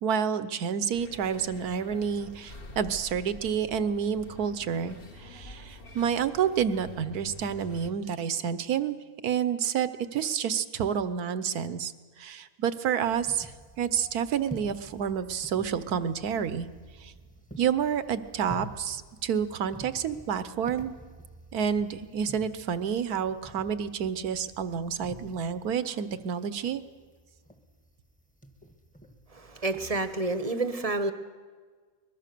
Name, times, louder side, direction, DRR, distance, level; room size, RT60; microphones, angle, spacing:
voice 1, 0.0-9.0 9.2-11.9 12.2-16.7 17.0-17.1 17.6-20.9 21.5-26.8, right 7 dB, 75° right, 13 dB, 1.4 m, -29 dB
sound 1, 0.9-7.9, left 1 dB, 40° left, 1.5 m, -47 dB
sound 2, 13.0-30.4, right 2 dB, 5° left, 1.2 m, -49 dB
voice 2, 29.3-31.1, right 2 dB, 30° right, 10 dB, 0.9 m, -29 dB
23.0 x 21.0 x 6.8 m, 1.6 s
omnidirectional pair, 1.6 m